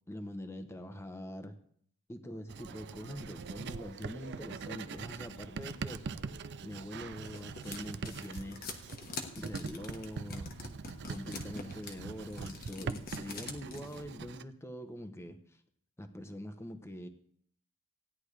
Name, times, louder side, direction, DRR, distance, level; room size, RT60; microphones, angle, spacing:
voice 1, 0.1-1.6 2.1-6.2 6.6-8.6 9.3-15.6 16.0-17.1, equal, 15° left, 8 dB, 0.9 m, -44 dB
Writing, 2.5-14.4, right 5 dB, 55° right, 0.5 m, -43 dB
sound 1, 6.8-14.0, left 4 dB, 45° left, 1.2 m, -45 dB
16.5 x 10.5 x 3.3 m, 0.65 s
head